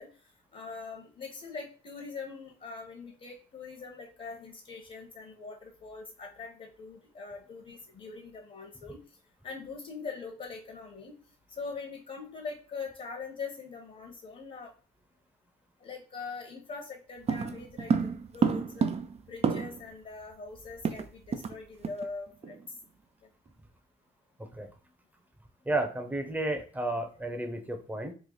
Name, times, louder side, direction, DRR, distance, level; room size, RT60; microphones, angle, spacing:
voice 1, 0.0-9.2 9.4-11.2 11.5-14.7 15.8-18.9 19.3-22.6, left 4 dB, 40° left, 1 dB, 1.0 m, -42 dB
sound 1, 17.3-19.9 20.2-20.3 20.6-21.6 21.8-22.1 22.4-22.7, right 5 dB, 35° right, 0.4 m, -30 dB
voice 2, 25.7-28.1, right 2 dB, 10° right, 5 dB, 0.7 m, -32 dB
3.2 x 2.3 x 3.8 m, 0.38 s
cardioid pair, 90°, 20 cm